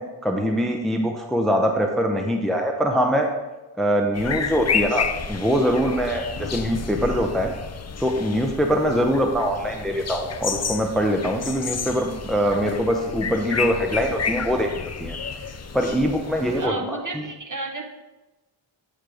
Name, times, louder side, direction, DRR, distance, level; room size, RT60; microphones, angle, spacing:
voice 1, 0.0-3.3 3.8-7.5 8.0-15.2 15.7-17.3, equal, ahead, 3 dB, 0.7 m, -23 dB
sound 1, 4.1-16.7, left 6 dB, 35° left, 0.5 m, -31 dB
voice 2, 16.5-17.9, right 3 dB, 40° right, 2 dB, 1.1 m, -32 dB
8.6 x 3.3 x 6.1 m, 1.1 s
wide cardioid pair, 85°, 48 cm